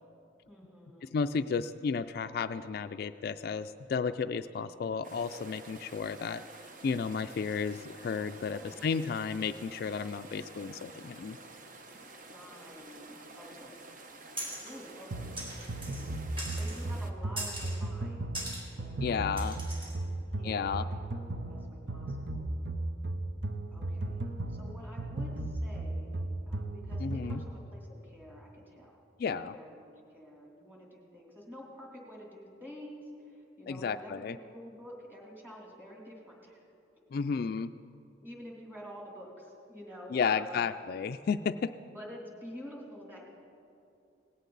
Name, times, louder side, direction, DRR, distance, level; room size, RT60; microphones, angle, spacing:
voice 1, 0.5-1.1 8.3-9.0 12.3-13.1 13.3-13.9 14.6-15.3 15.8-16.2 16.5-19.5 20.0-22.7 23.7-29.0 29.3-36.6 38.2-40.7 41.9-43.2, equal, 10° right, -2 dB, 2.9 m, -49 dB
voice 2, 1.0-6.4 6.8-11.4 19.0-19.6 20.4-20.9 27.0-27.4 29.2-29.5 33.7-34.4 37.1-37.7 40.1-41.7, left 5 dB, 55° left, 9 dB, 0.3 m, -33 dB
sound 1, 5.0-17.1, right 3 dB, 45° right, 0.9 m, -50 dB
sound 2, 14.4-14.7 15.4-16.1 16.4-16.8 17.4-17.8 18.3-18.6 19.4-20.0, right 1 dB, 30° right, 3.3 m, -40 dB
sound 3, 15.1-27.6, right 2 dB, 70° right, 0.8 m, -36 dB
18.0 x 16.5 x 4.0 m, 2.6 s
head